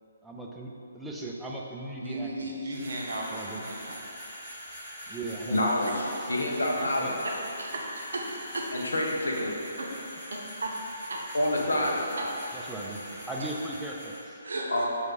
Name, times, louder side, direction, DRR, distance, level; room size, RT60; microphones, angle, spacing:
voice 1, 0.2-2.8 3.2-3.6 5.1-6.3 6.8-7.1 11.6-12.0 12.5-14.4, right 2 dB, 5° right, -3 dB, 0.3 m, -39 dB
voice 2, 2.0-4.0 5.8-8.7 9.4-9.5 9.8-9.9 10.3-10.7 11.1-11.3 12.2-12.3 13.4-13.5 14.4-14.7, right 2 dB, 65° right, -2 dB, 0.6 m, -36 dB
sound 1, 2.7-14.2, equal, 10° left, 1.3 m, -43 dB
voice 3, 5.5-7.2 8.7-9.5 11.3-12.2 14.7-14.9, left 1 dB, 70° left, -2 dB, 0.6 m, -27 dB
4.6 x 2.4 x 3.3 m, 2.8 s
figure-of-eight pair, 135°, 0 cm